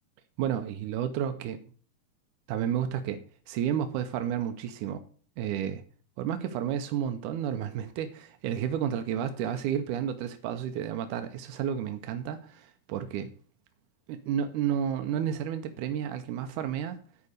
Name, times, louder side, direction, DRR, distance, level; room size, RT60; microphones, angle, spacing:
voice 1, 0.4-1.6 2.5-5.0 5.4-5.8 6.2-13.3 14.1-17.0, right 9 dB, 90° right, 2.2 m, -31 dB
11.0 x 4.8 x 6.5 m
omnidirectional pair, 3.5 m